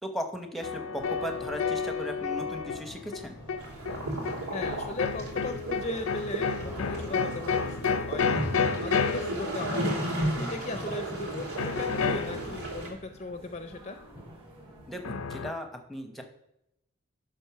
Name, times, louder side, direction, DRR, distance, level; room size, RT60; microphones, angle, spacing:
voice 1, 0.0-3.4 10.6-10.9 14.9-16.2, equal, ahead, 5 dB, 0.9 m, -37 dB
sound 1, 0.6-10.2 11.6-12.8 15.0-15.5, left 5 dB, 80° left, 0.6 m, -31 dB
sound 2, 1.0-15.3, equal, 25° right, 2.6 m, -50 dB
sound 3, 3.6-12.9, right 1 dB, 90° right, 2.9 m, -34 dB
voice 2, 4.5-14.0, left 3 dB, 30° left, 7 dB, 0.5 m, -38 dB
11.0 x 3.7 x 5.7 m, 0.83 s
head